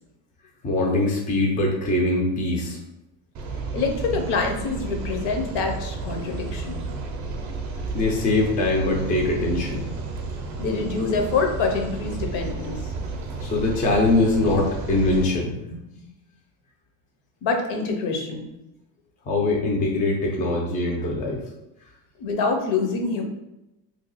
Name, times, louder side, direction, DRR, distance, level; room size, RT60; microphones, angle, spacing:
voice 1, 0.6-2.8 7.9-10.0 13.4-15.8 19.3-21.4, left 2 dB, 20° left, -1 dB, 0.4 m, -22 dB
sound 1, 3.3-15.2, right 3 dB, 40° right, 0.5 m, -32 dB
voice 2, 3.7-6.8 10.6-12.8 17.4-18.5 22.2-23.2, left 4 dB, 65° left, 4 dB, 0.8 m, -25 dB
2.8 x 2.3 x 4.0 m, 0.91 s
cardioid pair, 145°, 47 cm